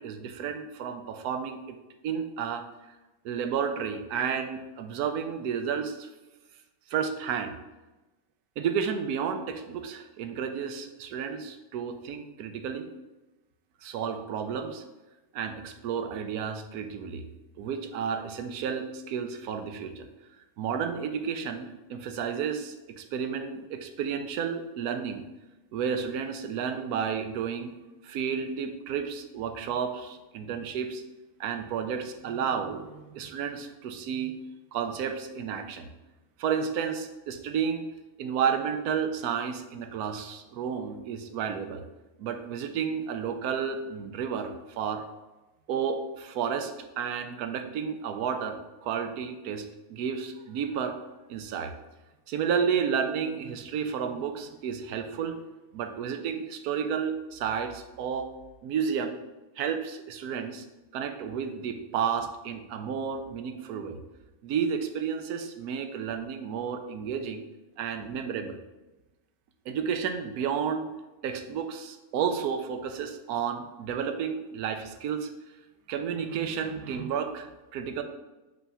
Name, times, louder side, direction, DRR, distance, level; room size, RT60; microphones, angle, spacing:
voice 1, 0.0-1.8 2.0-2.7 3.2-6.1 6.9-7.6 8.6-12.9 13.8-14.8 15.3-17.2 17.6-20.1 20.6-25.2 25.7-27.7 28.0-31.0 31.4-34.3 34.7-35.9 36.4-37.8 38.2-41.8 42.2-45.0 45.7-49.6 49.9-51.0 51.3-51.7 52.3-55.4 55.7-58.3 58.6-59.2 59.6-60.6 60.9-64.0 64.4-67.4 67.8-68.6 69.7-70.9 71.2-75.3 75.9-78.0, right 7 dB, 85° right, 7 dB, 1.2 m, -31 dB
5.7 x 3.3 x 5.5 m, 1.1 s
omnidirectional pair, 1.6 m